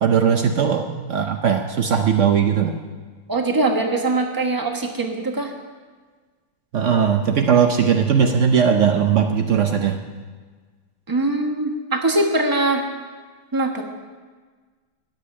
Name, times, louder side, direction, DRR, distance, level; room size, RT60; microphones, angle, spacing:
voice 1, 0.0-2.7 6.7-10.0, right 7 dB, 90° right, 5 dB, 0.6 m, -18 dB
voice 2, 3.3-5.5 11.1-12.8 13.5-13.8, right 2 dB, 15° right, 3 dB, 0.9 m, -22 dB
13.5 x 6.7 x 9.7 m, 1.4 s
omnidirectional pair, 2.2 m